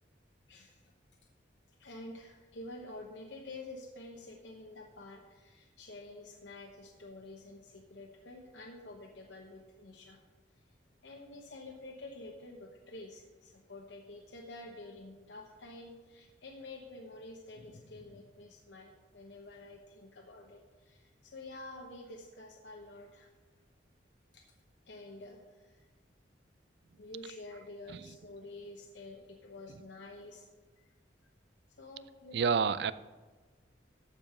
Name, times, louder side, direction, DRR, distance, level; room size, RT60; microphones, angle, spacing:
voice 1, 0.5-0.9 1.8-10.2 10.5-10.6 11.0-23.3 24.3-24.4 24.9-25.9 27.0-30.5 30.8-30.9 31.8-32.5, left 2 dB, 70° left, 1 dB, 1.0 m, -49 dB
voice 2, 32.3-32.9, right 5 dB, 60° right, 17 dB, 0.4 m, -29 dB
14.0 x 5.3 x 6.0 m, 1.3 s
head